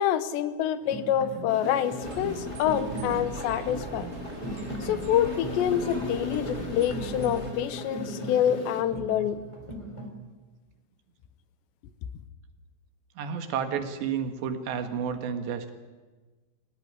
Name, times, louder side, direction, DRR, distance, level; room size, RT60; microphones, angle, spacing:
voice 1, 0.0-4.1 4.8-9.4, left 10 dB, 85° left, 13 dB, 3.2 m, -27 dB
sound 1, 0.8-10.1, right 2 dB, 5° left, 3.1 m, -39 dB
sound 2, 1.5-8.8, left 4 dB, 40° left, 1.4 m, -38 dB
sound 3, 2.0-7.5, right 4 dB, 35° right, 1.2 m, -41 dB
voice 2, 13.2-15.7, right 7 dB, 80° right, 7 dB, 3.9 m, -31 dB
24.5 x 17.0 x 9.7 m, 1.3 s
omnidirectional pair, 5.0 m